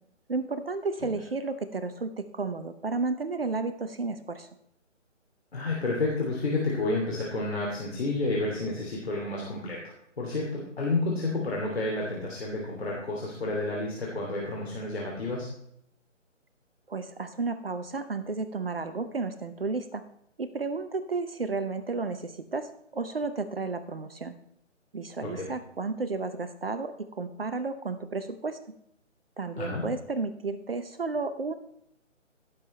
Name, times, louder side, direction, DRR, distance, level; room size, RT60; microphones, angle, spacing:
voice 1, 0.3-4.5 16.9-20.0 20.4-24.3 24.9-28.6 29.4-31.5, right 3 dB, 50° right, 11 dB, 0.9 m, -32 dB
voice 2, 5.5-9.8 10.2-15.5 25.2-25.5 29.6-29.8, left 2 dB, 55° left, -3 dB, 2.9 m, -30 dB
16.0 x 7.4 x 3.3 m, 0.75 s
figure-of-eight pair, 150°, 38 cm